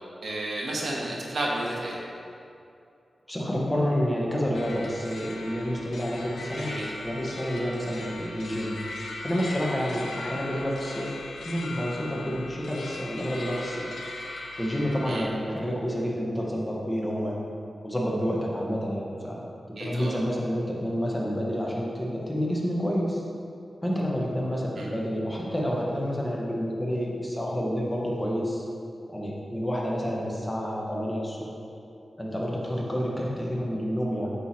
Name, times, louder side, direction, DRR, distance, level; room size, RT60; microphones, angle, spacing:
voice 1, 0.2-2.0 6.6-6.9 15.0-15.3 19.8-20.2 24.8-24.9, right 1 dB, 75° right, -4 dB, 1.1 m, -32 dB
voice 2, 3.3-6.7 7.0-8.8 9.2-11.2 11.4-13.9 14.6-17.4 17.8-19.4 19.7-23.2 23.8-28.6 29.1-31.5 32.2-34.3, equal, 15° left, -3 dB, 1.0 m, -29 dB
sound 1, 4.5-15.2, left 2 dB, 85° left, 0.5 m, -39 dB
8.0 x 3.1 x 4.3 m, 2.5 s
wide cardioid pair, 85°, 0 cm